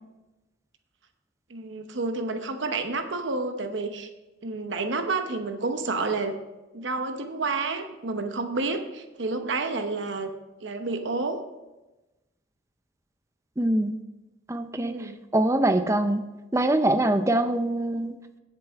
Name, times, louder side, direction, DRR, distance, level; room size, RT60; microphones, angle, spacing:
voice 1, 1.5-4.1 4.4-6.3 6.7-10.3 10.6-11.4 14.8-15.2, right 3 dB, 65° right, 6 dB, 0.9 m, -30 dB
voice 2, 13.6-14.0 14.5-16.2 16.5-18.1, right 1 dB, 15° right, 9 dB, 0.6 m, -24 dB
16.5 x 6.9 x 3.5 m, 1.1 s
head